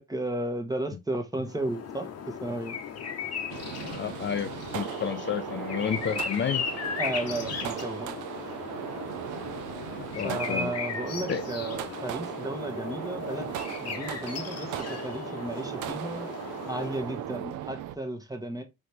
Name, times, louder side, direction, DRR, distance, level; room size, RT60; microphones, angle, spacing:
voice 1, 0.0-2.8 7.0-8.1 10.2-13.5 13.8-16.3 16.6-18.6, right 1 dB, 10° right, 1.0 m, -34 dB
sound 1, 1.4-17.3, left 6 dB, 55° left, 0.9 m, -37 dB
sound 2, 3.5-18.0, right 12 dB, 85° right, 0.5 m, -38 dB
voice 2, 3.8-6.6 10.2-10.7 11.3-11.4, left 8 dB, 40° left, 0.5 m, -31 dB
3.9 x 3.0 x 3.3 m
cardioid pair, 90°, 30 cm